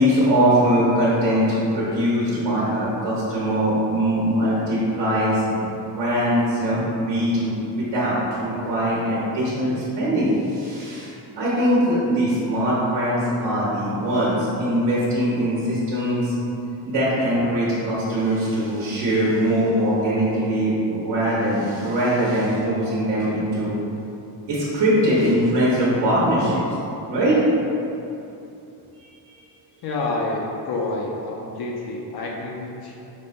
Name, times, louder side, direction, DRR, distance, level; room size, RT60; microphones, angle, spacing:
voice 1, 0.0-5.6 5.9-16.4 16.8-23.7 24.5-26.6 27.1-27.4, equal, 65° right, -8 dB, 1.2 m, -21 dB
voice 2, 29.8-33.0, left 2 dB, 60° left, -2 dB, 0.6 m, -28 dB
5.2 x 2.2 x 3.8 m, 2.8 s
cardioid pair, 165°, 43 cm